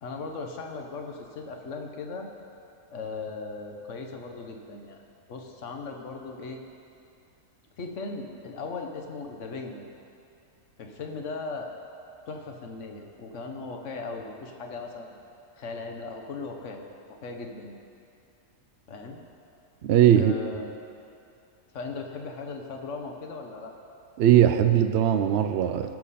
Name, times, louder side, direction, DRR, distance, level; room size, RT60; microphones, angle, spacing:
voice 1, 0.0-2.3 2.9-5.0 5.3-6.6 7.8-9.9 10.8-11.7 12.3-15.2 15.6-16.8 17.1-17.7 18.9-19.2 20.1-20.7 21.7-23.7, left 4 dB, 60° left, 3 dB, 1.3 m, -38 dB
voice 2, 19.8-20.3 24.2-25.9, right 11 dB, 65° right, 8 dB, 0.6 m, -20 dB
16.5 x 7.0 x 4.2 m, 2.6 s
omnidirectional pair, 1.5 m